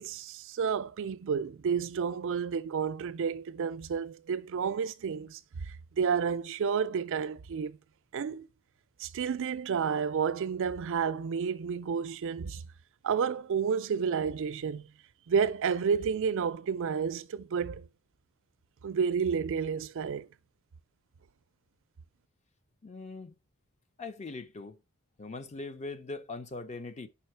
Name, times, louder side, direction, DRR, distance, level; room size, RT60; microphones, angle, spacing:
voice 1, 0.0-7.8 8.1-8.5 9.0-12.6 13.0-14.9 15.3-17.9 18.8-20.3, right 6 dB, 60° right, 0.4 m, -31 dB
voice 2, 22.8-23.4 24.0-24.8 25.2-27.1, left 3 dB, 30° left, 0.6 m, -41 dB
5.6 x 4.7 x 4.5 m
head